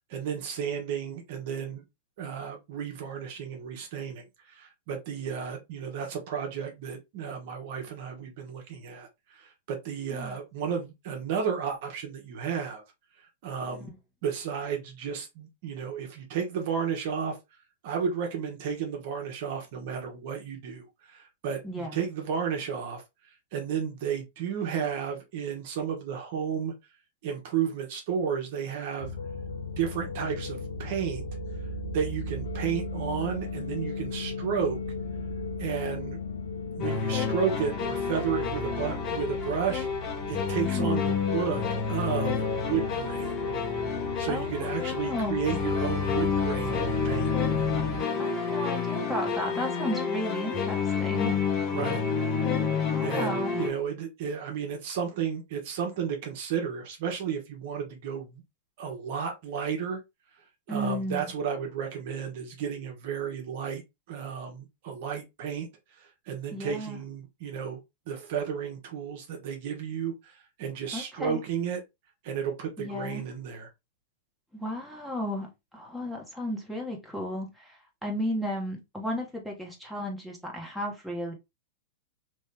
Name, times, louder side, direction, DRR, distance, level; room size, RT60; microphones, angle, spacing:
voice 1, 0.1-1.8 2.2-12.8 13.4-13.9 14.2-17.4 17.8-23.0 23.5-26.7 27.2-29.1 29.8-31.2 31.9-34.8 35.6-36.2 36.8-39.9 40.3-41.6 41.9-43.3 44.2-47.3 51.7-52.0 53.0-58.4 58.8-60.0 60.7-63.8 64.1-65.7 66.0-71.8 72.2-73.7, right 7 dB, 60° right, 1.2 m, -32 dB
voice 2, 21.6-22.0 40.6-41.0 44.3-45.4 48.2-51.4 52.9-53.5 60.7-61.3 66.5-67.0 70.9-71.4 72.8-73.2 74.5-81.3, equal, ahead, 1.4 m, -34 dB
sound 1, 29.0-48.0, left 2 dB, 85° left, 1.0 m, -36 dB
sound 2, 36.8-53.7, left 6 dB, 35° left, 0.9 m, -29 dB
3.1 x 2.7 x 3.4 m
hypercardioid pair, 115°, 0 cm